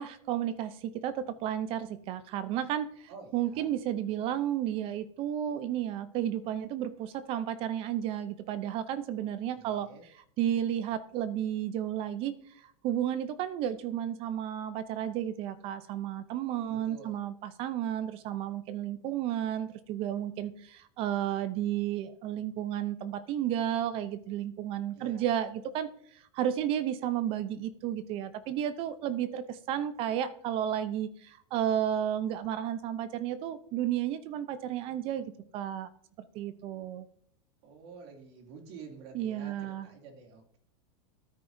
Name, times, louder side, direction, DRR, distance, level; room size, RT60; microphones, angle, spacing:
voice 1, 0.0-35.9 36.2-37.1 39.1-39.9, right 10 dB, 40° right, 14 dB, 0.6 m, -32 dB
voice 2, 3.1-3.7 9.5-10.0 16.7-17.2 24.9-25.3 37.6-40.6, right 5 dB, 60° right, 2 dB, 2.5 m, -49 dB
13.0 x 9.5 x 2.7 m, 0.65 s
supercardioid pair, 145°, 15 cm